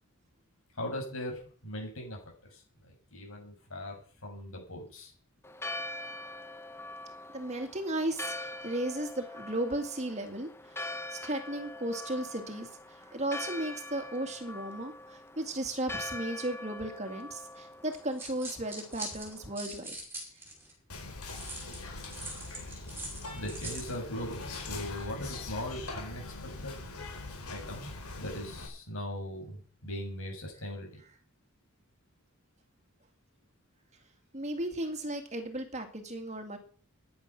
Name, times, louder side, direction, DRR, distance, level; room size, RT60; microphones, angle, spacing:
voice 1, 0.7-2.2 2.5-5.1 23.3-26.7 27.5-27.9 28.2-30.9, left 1 dB, 65° left, 1 dB, 7.8 m, -39 dB
Church bell, 5.4-19.5, left 2 dB, 10° left, 0.8 m, -43 dB
voice 2, 7.3-10.5 11.1-20.0 34.3-36.6, right 1 dB, 30° right, 6 dB, 2.2 m, -35 dB
sound 1, 17.9-20.7 21.3-24.0, right 1 dB, 10° right, 5.2 m, -42 dB
Whispering, 20.9-28.7, left 3 dB, 90° left, 5.0 m, -42 dB
16.0 x 10.5 x 5.9 m, 0.42 s
head